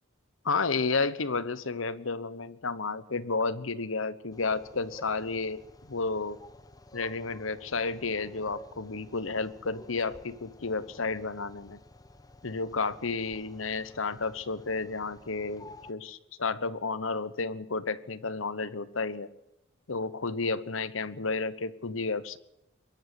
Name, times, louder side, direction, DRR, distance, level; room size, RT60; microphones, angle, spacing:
voice 1, 0.4-5.6 5.9-6.4 6.9-11.8 12.4-19.3 19.9-22.4, left 4 dB, 80° left, 16 dB, 1.1 m, -32 dB
sound 1, 4.3-15.9, left 2 dB, 20° left, 1.1 m, -52 dB
23.0 x 13.5 x 9.4 m, 0.84 s
head